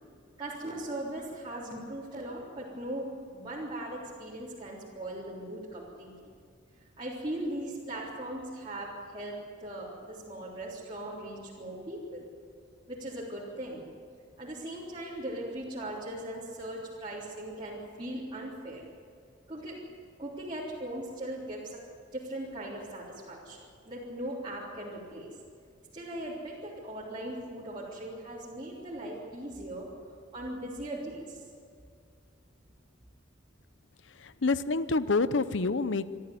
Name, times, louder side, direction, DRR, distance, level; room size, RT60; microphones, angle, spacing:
voice 1, 0.4-6.3 7.0-12.3 12.9-13.8 14.4-18.8 19.5-19.8 20.2-21.8 22.1-25.3 25.9-29.9 30.3-31.4, right 1 dB, 25° right, -8 dB, 3.5 m, -39 dB
voice 2, 34.4-36.1, left 3 dB, 75° left, 14 dB, 0.7 m, -27 dB
24.0 x 13.5 x 9.4 m, 2.2 s
head